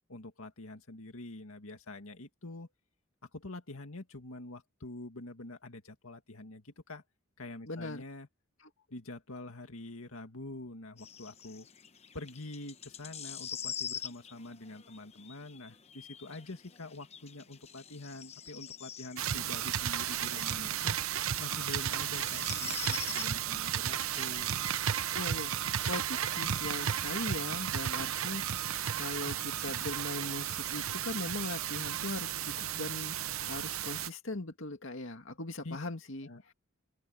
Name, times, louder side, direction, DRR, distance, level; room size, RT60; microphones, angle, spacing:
voice 1, 0.1-2.7 3.3-7.0 7.4-8.3 8.9-11.7 12.1-21.0 21.4-24.5 35.6-35.8 36.2-36.4, left 2 dB, 80° left, 2.1 m, -46 dB
voice 2, 7.7-8.0 25.1-36.5, left 2 dB, 65° left, 2.2 m, -40 dB
sound 1, 11.0-30.9, left 8 dB, 30° left, 1.0 m, -47 dB
sound 2, 19.2-34.1, right 10 dB, 75° right, 0.7 m, -34 dB
open air
head